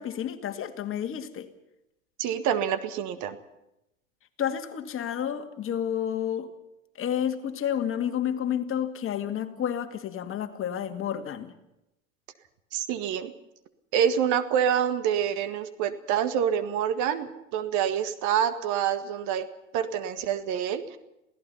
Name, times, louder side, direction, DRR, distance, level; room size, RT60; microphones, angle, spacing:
voice 1, 0.0-1.5 4.4-6.5 7.0-11.5, left 9 dB, 35° left, 7 dB, 2.1 m, -30 dB
voice 2, 2.2-3.4 12.7-13.3 13.9-19.5 19.7-21.0, right 9 dB, 50° right, 11 dB, 1.8 m, -27 dB
27.5 x 17.0 x 5.7 m, 0.87 s
hypercardioid pair, 90°, 39 cm